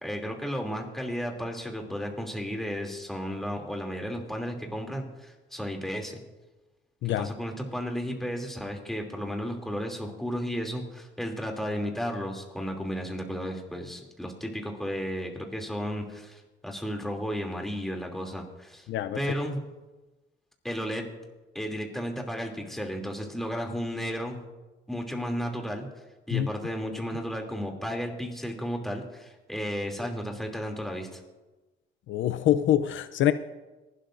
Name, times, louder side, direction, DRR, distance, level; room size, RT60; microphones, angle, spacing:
voice 1, 0.0-6.2 7.2-18.9 19.1-19.6 20.6-21.1 21.5-24.4 24.9-25.9 26.3-31.2, equal, ahead, 2.9 m, -33 dB
voice 2, 32.1-33.3, left 12 dB, 75° left, 0.6 m, -25 dB
26.5 x 12.5 x 2.6 m
cardioid pair, 90°, 20 cm